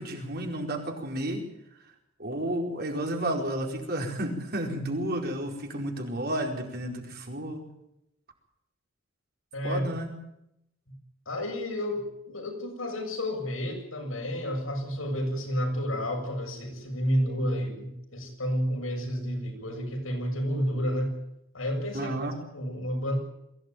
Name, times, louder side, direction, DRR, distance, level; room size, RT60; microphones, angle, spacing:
voice 1, 0.0-1.4 2.2-7.7 9.6-10.1 21.9-22.4, right 1 dB, 50° right, 2 dB, 4.7 m, -32 dB
voice 2, 9.5-9.8 11.3-21.1 21.5-22.1 22.5-23.1, equal, 90° left, 3 dB, 7.3 m, -30 dB
22.5 x 16.0 x 9.3 m, 0.83 s
head